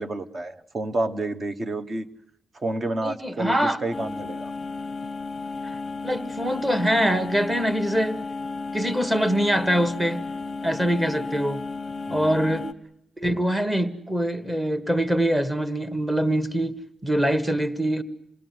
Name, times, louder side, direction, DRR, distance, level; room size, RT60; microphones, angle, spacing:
voice 1, 0.0-2.1 2.5-4.5 12.1-12.5, right 2 dB, 30° right, 1.1 m, -30 dB
voice 2, 3.0-3.8 5.6-5.7 6.0-8.2 8.7-10.2 10.6-11.6 12.1-12.7 13.2-16.8 17.0-18.0, right 1 dB, 10° right, 1.4 m, -24 dB
sound 1, 3.9-12.7, left 4 dB, 20° left, 0.9 m, -33 dB
27.5 x 20.0 x 9.4 m
wide cardioid pair, 170°, 0 cm